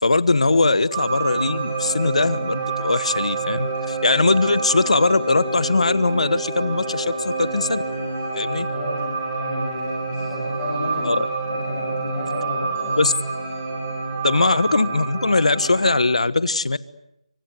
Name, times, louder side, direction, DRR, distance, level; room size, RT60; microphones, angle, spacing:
voice 1, 0.0-7.8 8.4-8.7 11.0-11.3 13.0-13.1 14.2-16.8, left 3 dB, 70° left, 16 dB, 1.3 m, -20 dB
sound 1, 0.9-16.0, right 3 dB, 15° right, 4.5 m, -28 dB
voice 2, 8.7-9.0 9.4-11.1 11.5-13.0, left 1 dB, 10° left, -4 dB, 7.0 m, -31 dB
28.5 x 24.5 x 8.0 m, 0.84 s
figure-of-eight pair, 180°, 4 cm